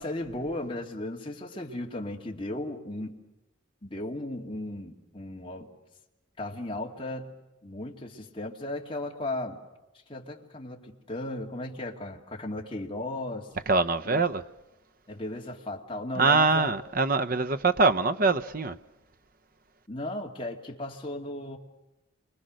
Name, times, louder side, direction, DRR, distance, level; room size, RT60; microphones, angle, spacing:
voice 1, 0.0-3.2 3.8-5.7 6.4-7.4 7.6-9.6 10.1-13.5 14.1-14.2 15.1-16.8 19.9-21.6, left 1 dB, 25° left, 2.4 m, -36 dB
voice 2, 13.7-14.4 16.2-18.8, right 3 dB, 45° right, 0.8 m, -23 dB
28.0 x 24.0 x 6.4 m
head